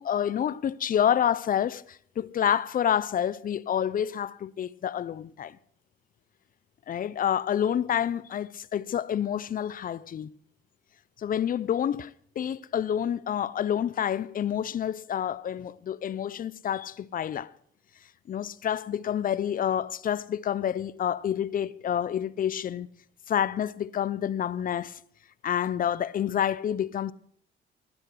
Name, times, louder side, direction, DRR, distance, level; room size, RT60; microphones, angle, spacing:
voice 1, 0.0-5.6 6.9-10.3 11.2-17.5 18.3-22.9 23.3-25.0 25.4-27.1, left 9 dB, 45° left, 0.5 m, -28 dB
12.5 x 8.9 x 7.7 m
cardioid pair, 90°, 20 cm